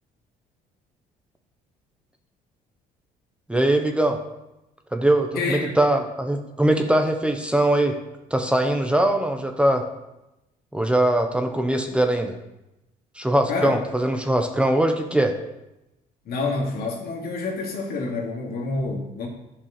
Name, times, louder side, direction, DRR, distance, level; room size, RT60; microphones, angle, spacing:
voice 1, 3.5-4.2 4.9-8.0 8.3-9.8 10.7-12.3 13.2-15.3, right 1 dB, 5° right, 4 dB, 0.9 m, -21 dB
voice 2, 5.3-5.7 13.5-13.8 16.2-19.3, left 3 dB, 65° left, -1 dB, 2.5 m, -27 dB
10.5 x 5.4 x 6.6 m, 0.94 s
cardioid pair, 110°, 17 cm